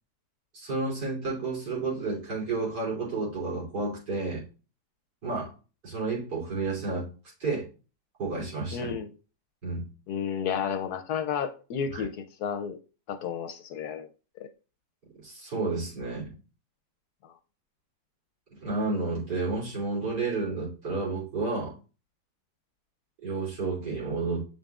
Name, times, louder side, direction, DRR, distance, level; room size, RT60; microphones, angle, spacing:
voice 1, 0.5-4.4 5.2-5.5 5.8-7.1 7.4-7.6 8.2-8.9 9.6-9.9 11.9-12.0 15.2-16.3 18.6-21.7 23.2-24.4, right 3 dB, 70° right, 3.7 m, -31 dB
voice 2, 8.7-9.1 10.1-12.1 12.4-12.8 13.1-14.1 17.2-17.3, left 7 dB, 70° left, 1.0 m, -31 dB
7.6 x 5.3 x 2.4 m
omnidirectional pair, 1.9 m